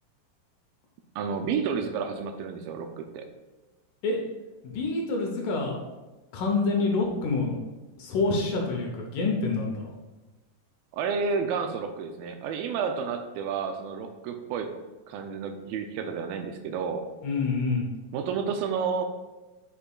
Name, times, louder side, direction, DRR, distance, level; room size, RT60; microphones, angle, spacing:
voice 1, 1.2-3.3 10.9-14.7 15.1-17.0 18.1-19.0, right 6 dB, 80° right, 5 dB, 2.3 m, -30 dB
voice 2, 4.6-5.8 6.3-7.6 8.0-9.9 17.2-17.9, left 3 dB, 70° left, 0 dB, 2.2 m, -27 dB
9.7 x 5.1 x 2.4 m, 1.1 s
omnidirectional pair, 4.2 m